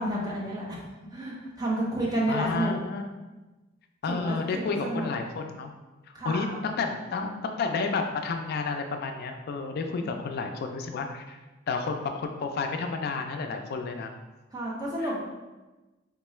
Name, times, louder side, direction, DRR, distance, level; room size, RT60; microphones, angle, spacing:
voice 1, 0.0-2.7 4.1-5.2 6.1-6.7 7.2-7.3 10.0-10.2 14.5-15.2, right 1 dB, 20° right, -5 dB, 0.7 m, -31 dB
voice 2, 2.3-3.0 4.0-5.7 6.2-11.4 11.7-14.1, left 4 dB, 55° left, 5 dB, 0.3 m, -31 dB
3.6 x 2.2 x 3.1 m, 1.1 s
head